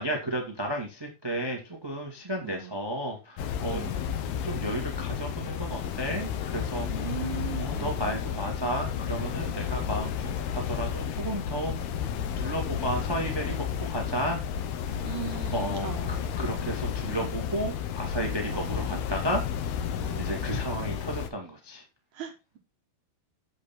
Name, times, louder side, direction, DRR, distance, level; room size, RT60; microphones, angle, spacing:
voice 1, 0.0-3.8 4.4-6.9 7.2-7.3 7.6-10.1 10.5-11.8 12.4-14.4 15.5-19.4 20.2-21.8, right 1 dB, 20° right, 2 dB, 0.7 m, -33 dB
voice 2, 2.4-2.8 3.7-4.1 6.9-8.2 11.6-11.8 15.0-16.2 18.5-19.0 20.0-20.4 22.1-22.6, right 7 dB, 65° right, 4 dB, 2.1 m, -39 dB
sound 1, 3.4-21.3, left 8 dB, 80° left, 3.0 m, -32 dB
8.6 x 7.8 x 4.3 m, 0.27 s
omnidirectional pair, 4.4 m